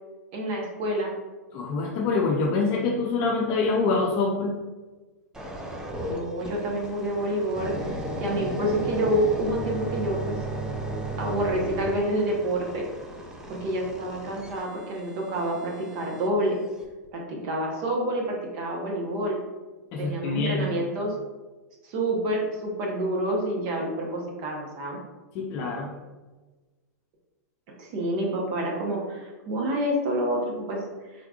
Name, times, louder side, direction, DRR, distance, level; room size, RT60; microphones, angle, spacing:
voice 1, 0.3-1.1 6.0-10.4 11.2-12.8 13.5-16.6 17.1-19.4 20.0-21.1 21.8-25.0 27.8-30.8, right 1 dB, 45° right, -1 dB, 1.0 m, -28 dB
voice 2, 1.5-4.5 19.9-20.7 25.3-25.9, left 3 dB, 40° left, -1 dB, 0.5 m, -25 dB
sound 1, 5.3-16.3 16.8-17.1, right 1 dB, 10° right, 0.5 m, -35 dB
3.7 x 3.4 x 2.3 m, 1.2 s
hypercardioid pair, 115°, 9 cm